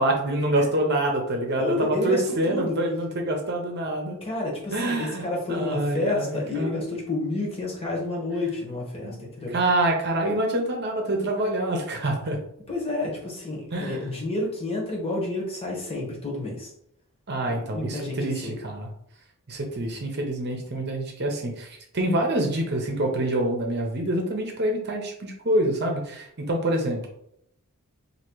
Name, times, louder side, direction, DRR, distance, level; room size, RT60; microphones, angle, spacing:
voice 1, 0.0-4.2 4.7-6.8 9.0-9.2 9.5-12.4 13.7-14.0 17.3-18.9 19.5-21.7 21.9-27.1, right 1 dB, 50° right, 2 dB, 0.8 m, -26 dB
voice 2, 1.6-2.8 4.2-9.5 12.7-16.7 17.5-18.5, left 2 dB, 25° left, -2 dB, 1.2 m, -30 dB
2.9 x 2.8 x 4.5 m, 0.73 s
head